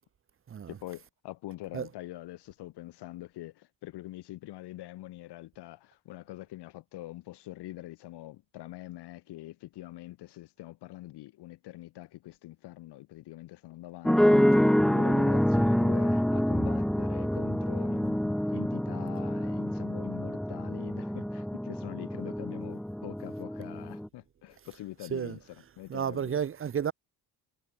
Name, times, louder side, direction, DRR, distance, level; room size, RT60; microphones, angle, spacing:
voice 1, 0.7-25.4 25.8-26.3, left 16 dB, 75° left, 2.1 m, -44 dB
sound 1, 14.0-24.1, equal, ahead, 0.5 m, -27 dB
voice 2, 25.9-26.9, right 8 dB, 30° right, 0.9 m, -31 dB
cardioid pair, 115°, 40 cm